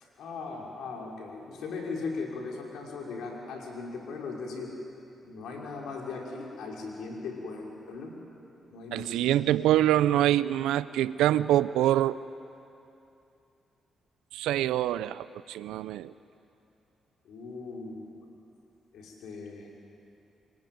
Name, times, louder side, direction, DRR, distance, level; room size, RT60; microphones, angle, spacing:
voice 1, 0.2-4.7 5.2-8.1 8.7-9.6 17.3-18.1 18.9-19.7, left 4 dB, 75° left, -1 dB, 5.5 m, -38 dB
voice 2, 8.9-12.2 14.3-16.1, right 13 dB, 85° right, 17 dB, 0.6 m, -25 dB
27.0 x 22.5 x 9.4 m, 2.7 s
supercardioid pair, 55°, 0 cm